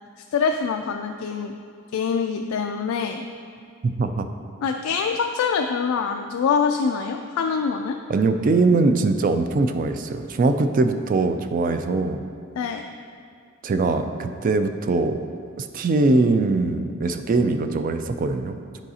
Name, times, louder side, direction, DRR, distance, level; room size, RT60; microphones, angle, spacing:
voice 1, 0.3-1.5 1.9-3.2 4.6-8.0 12.6-12.8, left 6 dB, 85° left, 4 dB, 0.3 m, -24 dB
voice 2, 3.8-4.3 8.1-12.2 13.6-15.2 15.6-18.8, right 3 dB, 40° right, 8 dB, 0.3 m, -22 dB
9.0 x 4.8 x 2.8 m, 2.3 s
head